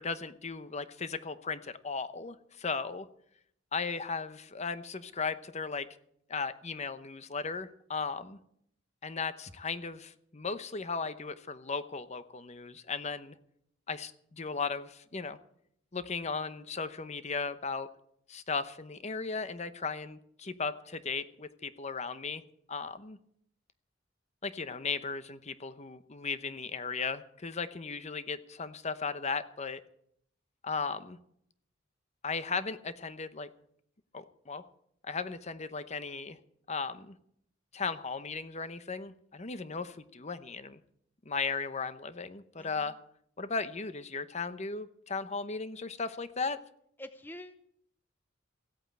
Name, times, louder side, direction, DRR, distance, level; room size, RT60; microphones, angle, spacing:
voice 1, 0.0-3.1 3.7-5.9 6.3-8.4 9.0-13.3 13.9-15.4 15.9-17.9 18.3-22.4 22.7-23.2 24.4-29.8 30.6-31.2 32.2-33.5 34.1-34.6 35.0-36.4 36.7-37.2 37.7-40.8 41.2-43.0 43.4-46.6, left 4 dB, 35° left, 12 dB, 0.9 m, -36 dB
voice 2, 42.6-42.9 47.0-47.5, left 1 dB, 10° left, 9 dB, 0.7 m, -46 dB
16.0 x 8.8 x 8.8 m, 0.69 s
head